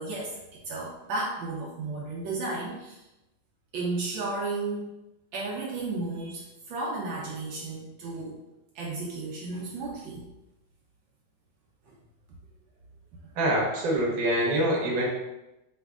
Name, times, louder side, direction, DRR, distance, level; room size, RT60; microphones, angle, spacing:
voice 1, 0.0-3.0 3.7-4.9 5.3-8.4 8.7-10.2 11.9-12.0, right 3 dB, 75° right, -3 dB, 1.3 m, -33 dB
voice 2, 13.4-15.1, right 1 dB, 55° right, -3 dB, 1.2 m, -25 dB
5.0 x 3.1 x 2.3 m, 0.96 s
omnidirectional pair, 2.2 m